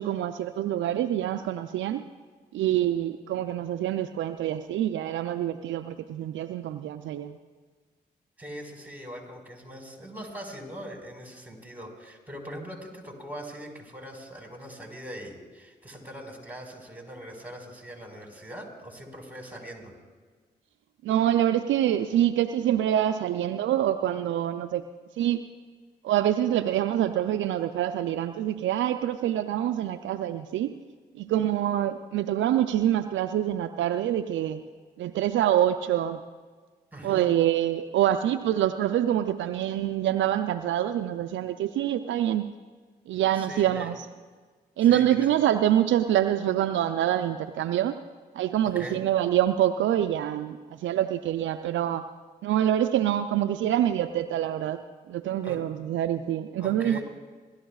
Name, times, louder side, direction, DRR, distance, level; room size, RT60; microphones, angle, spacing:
voice 1, 0.0-2.0 2.5-7.4 21.0-24.8 25.2-25.4 26.0-30.7 31.1-34.6 35.0-36.2 37.0-42.5 43.1-44.1 44.8-47.9 48.3-52.0 52.4-54.8 55.1-57.0, right 11 dB, 75° right, 9 dB, 0.5 m, -25 dB
voice 2, 8.4-20.0 36.9-37.2 43.3-43.9 44.8-45.3 48.7-49.0 55.4-55.6 56.6-57.0, equal, 10° right, 1 dB, 4.7 m, -41 dB
27.0 x 13.0 x 2.4 m, 1.4 s
hypercardioid pair, 40°, 20 cm